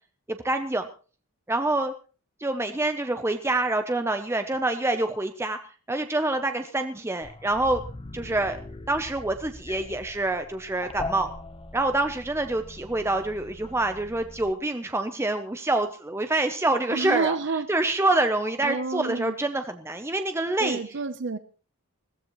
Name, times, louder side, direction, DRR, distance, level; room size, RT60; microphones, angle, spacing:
voice 1, 0.3-0.9 1.5-1.9 2.4-5.6 5.9-7.8 8.1-8.6 8.9-11.3 11.7-17.3 17.7-20.8, right 2 dB, 10° right, 0.6 m, -26 dB
sound 1, 7.2-14.5, left 2 dB, 25° left, 0.9 m, -41 dB
voice 2, 16.9-17.7 18.6-19.4 20.6-21.4, right 4 dB, 55° right, 0.7 m, -29 dB
21.0 x 15.5 x 3.1 m
head